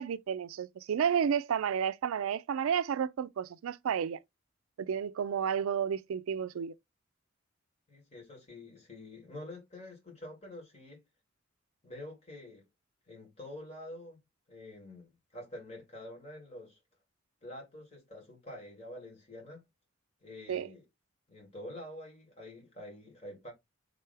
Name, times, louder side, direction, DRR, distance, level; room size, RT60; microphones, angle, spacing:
voice 1, 0.0-4.2 4.8-6.7 20.5-20.7, right 7 dB, 90° right, 0.4 m, -31 dB
voice 2, 7.9-11.0 11.8-12.6 13.0-14.2 14.5-16.8 17.4-19.6 20.2-20.8 21.3-23.5, left 1 dB, 30° left, 2.3 m, -47 dB
3.7 x 3.3 x 3.3 m
head